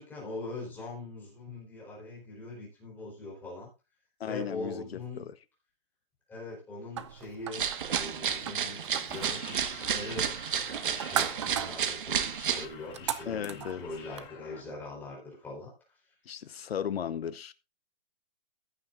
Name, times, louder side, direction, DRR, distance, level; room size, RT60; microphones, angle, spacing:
voice 1, 0.0-3.7 4.2-5.3 6.3-10.3 11.1-15.7, left 2 dB, 5° left, 3.9 m, -42 dB
voice 2, 4.2-4.8 5.2-5.3 13.3-13.8 16.3-17.5, left 9 dB, 90° left, 0.8 m, -35 dB
sound 1, 7.0-14.3, right 9 dB, 30° right, 0.6 m, -39 dB
sound 2, 7.5-12.6, right 7 dB, 60° right, 1.4 m, -32 dB
sound 3, 9.1-14.6, left 7 dB, 25° left, 2.8 m, -49 dB
15.0 x 9.9 x 2.6 m
hypercardioid pair, 165°, 30 cm